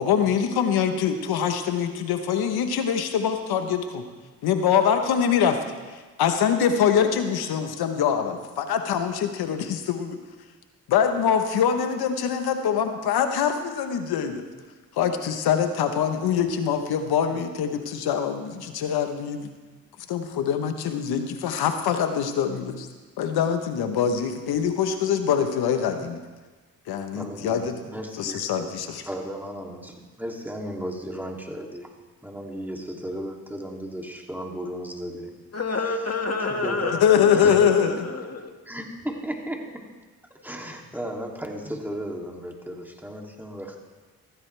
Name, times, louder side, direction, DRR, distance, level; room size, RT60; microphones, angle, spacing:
voice 1, 0.0-4.0 4.4-5.6 6.2-10.2 10.9-14.4 15.0-19.5 20.1-22.9 23.2-26.2 26.9-27.8 28.2-29.1 37.0-38.1, left 8 dB, 90° left, 7 dB, 1.2 m, -24 dB
voice 2, 27.1-28.5 29.1-31.9 32.2-35.3 36.5-37.6 38.7-39.8 40.4-43.8, equal, 5° right, 0 dB, 2.8 m, -35 dB
voice 3, 35.5-38.5, left 3 dB, 40° left, 3 dB, 2.1 m, -29 dB
16.0 x 15.0 x 3.4 m, 1.3 s
supercardioid pair, 55°, 37 cm